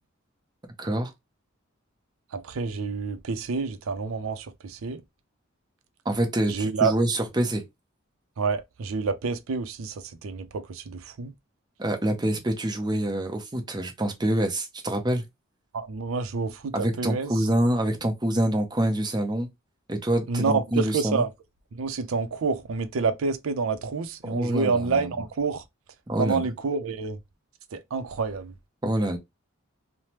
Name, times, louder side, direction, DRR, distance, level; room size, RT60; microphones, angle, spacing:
voice 1, 0.8-1.1 6.0-7.6 11.8-15.2 16.7-19.5 19.9-21.2 24.3-25.0 26.1-26.4 28.8-29.2, right 1 dB, 20° right, 0.6 m, -26 dB
voice 2, 2.3-5.0 6.5-6.9 8.4-11.3 15.7-17.3 20.3-21.3 21.7-25.6 26.2-27.2 27.7-28.5, right 4 dB, 85° right, 0.5 m, -28 dB
3.2 x 2.0 x 2.8 m
head